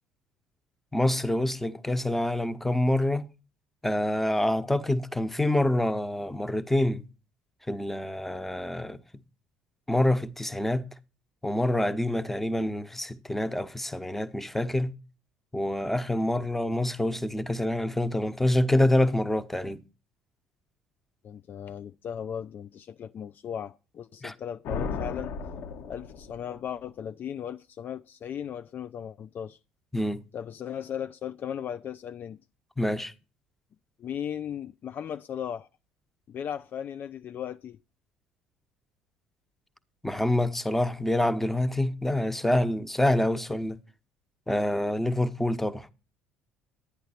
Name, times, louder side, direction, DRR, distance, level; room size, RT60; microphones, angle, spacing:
voice 1, 0.9-3.3 3.8-7.0 7.7-9.0 9.9-10.8 11.4-14.9 15.5-19.8 24.2-24.3 29.9-30.2 32.8-33.1 40.0-43.8 44.5-45.9, left 1 dB, 5° left, 1.2 m, -26 dB
voice 2, 21.2-25.3 25.9-29.6 30.3-32.4 34.0-35.7 36.3-37.8, left 9 dB, 40° left, 0.5 m, -37 dB
sound 1, 24.6-26.6, left 5 dB, 55° left, 1.7 m, -35 dB
11.5 x 10.0 x 4.3 m
figure-of-eight pair, 55°, 5 cm